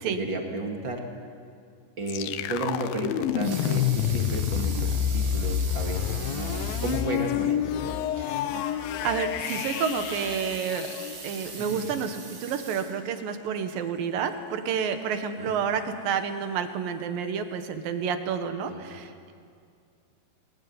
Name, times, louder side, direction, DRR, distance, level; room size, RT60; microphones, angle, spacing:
voice 1, 0.1-1.0 2.0-7.6 11.6-11.8 15.3-15.5 18.7-18.8, right 2 dB, 35° right, 2 dB, 2.3 m, -33 dB
sound 1, 2.1-11.9, left 10 dB, 75° left, 2.5 m, -29 dB
Water tap faucet / Sink (filling or washing) / Liquid, 3.2-7.2 7.6-7.7 8.1-8.2 9.2-13.4 14.0-14.1, right 6 dB, 90° right, 4.6 m, -41 dB
voice 2, 8.2-10.9 11.2-19.3, right 7 dB, 70° right, 8 dB, 3.0 m, -30 dB
22.0 x 20.5 x 9.6 m, 2.3 s
omnidirectional pair, 4.4 m